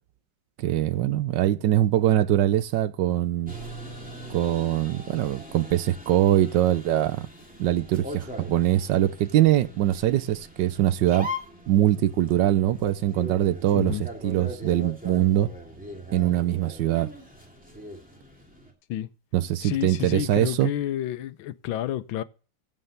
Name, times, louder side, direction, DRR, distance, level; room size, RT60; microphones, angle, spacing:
voice 1, 0.6-3.5 4.3-7.3 7.6-11.3 11.7-14.0 14.2-15.5 16.1-17.1 19.3-20.7, right 13 dB, 70° right, 1.3 m, -23 dB
sound 1, 3.5-18.7, equal, 5° right, 2.4 m, -41 dB
voice 2, 19.6-22.2, left 12 dB, 85° left, 1.5 m, -30 dB
15.5 x 5.6 x 6.8 m
omnidirectional pair, 2.1 m